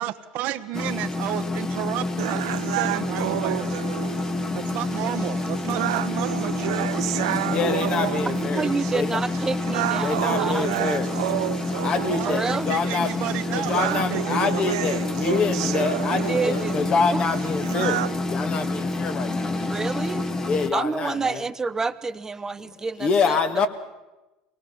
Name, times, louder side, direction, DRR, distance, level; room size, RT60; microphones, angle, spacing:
voice 1, 0.0-3.8 4.7-8.9 11.7-14.8, right 13 dB, 60° right, 11 dB, 1.1 m, -33 dB
sound 1, 0.7-20.7, left 2 dB, 20° left, 1.5 m, -28 dB
sound 2, 2.2-18.2, right 15 dB, 85° right, 0.7 m, -30 dB
voice 2, 7.4-9.2 10.0-11.2 11.8-13.2 13.5-18.0 18.3-19.8 20.4-21.4 22.6-22.7 23.0-23.7, left 5 dB, 40° left, 9 dB, 2.0 m, -26 dB
voice 3, 8.5-11.0 12.2-12.7 16.1-17.2 19.7-20.3 20.7-23.4, right 4 dB, 20° right, 13 dB, 1.0 m, -29 dB
23.5 x 18.5 x 7.1 m, 1.1 s
supercardioid pair, 95°, 3 cm